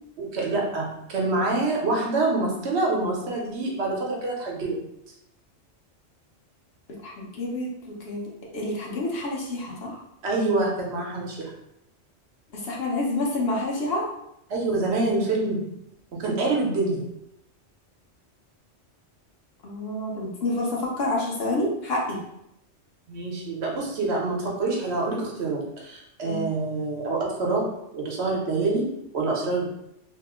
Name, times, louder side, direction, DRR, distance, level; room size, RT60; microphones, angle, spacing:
voice 1, 0.2-4.8 10.2-11.5 14.5-15.6 16.1-17.1 23.1-27.6 27.9-28.9 29.1-29.7, right 3 dB, 65° right, -2 dB, 1.0 m, -26 dB
voice 2, 7.0-8.3 8.5-10.0 12.5-14.1 19.6-22.2 26.2-26.4, left 2 dB, 60° left, -3 dB, 0.9 m, -28 dB
2.8 x 2.0 x 3.5 m, 0.81 s
omnidirectional pair, 1.2 m